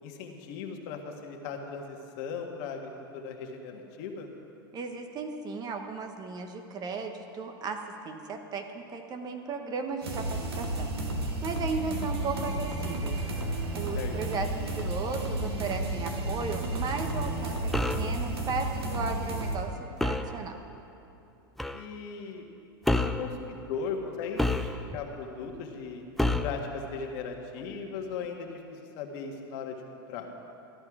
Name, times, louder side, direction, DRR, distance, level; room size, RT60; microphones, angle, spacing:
voice 1, 0.0-4.3 14.0-14.1 21.7-22.5 23.2-26.0 26.4-30.3, left 5 dB, 55° left, 2 dB, 1.6 m, -38 dB
voice 2, 4.7-7.8 8.0-10.9 11.4-13.2 13.7-14.5 14.8-20.6, right 4 dB, 30° right, 5 dB, 1.2 m, -35 dB
sound 1, 10.0-19.6, right 1 dB, 85° right, 1.9 m, -32 dB
sound 2, 17.7-18.1 20.0-20.3 21.6-21.8 22.8-23.3 24.4-25.0 26.2-26.6, left 2 dB, ahead, 0.5 m, -28 dB
14.5 x 10.5 x 4.9 m, 2.9 s
hypercardioid pair, 105°, 13 cm